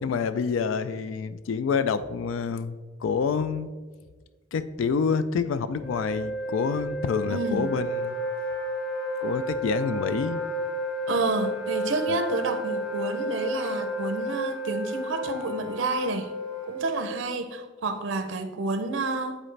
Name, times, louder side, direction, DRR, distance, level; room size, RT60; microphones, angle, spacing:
voice 1, 0.0-3.7 4.5-8.2 9.2-10.4 12.1-12.2, left 5 dB, 80° left, 12 dB, 0.3 m, -27 dB
sound 1, 5.8-15.5, right 1 dB, 5° right, 0.4 m, -33 dB
voice 2, 7.2-7.7 11.1-16.3 16.7-19.4, right 3 dB, 75° right, 8 dB, 0.6 m, -29 dB
Wind instrument woodwind instrument, 7.3-17.2, left 1 dB, 30° left, 1.3 m, -35 dB
10.0 x 4.1 x 3.2 m, 1.4 s
head